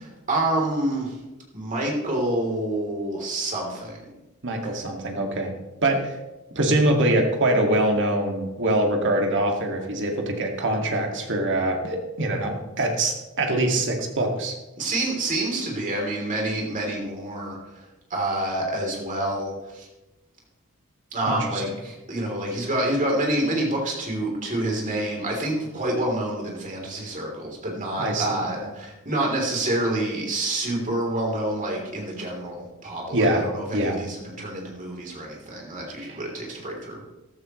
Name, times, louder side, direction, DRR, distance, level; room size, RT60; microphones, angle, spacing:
voice 1, 0.3-1.2 1.5-4.0 4.6-4.8 14.8-17.8 18.1-19.9 21.1-37.0, right 1 dB, 35° right, -1 dB, 3.4 m, -27 dB
voice 2, 4.4-5.5 5.8-6.1 6.6-14.6 21.3-21.6 28.0-28.4 33.1-33.4 33.7-34.0 36.0-36.2, right 1 dB, 55° right, 2 dB, 2.1 m, -24 dB
14.0 x 13.0 x 3.2 m, 1.0 s
head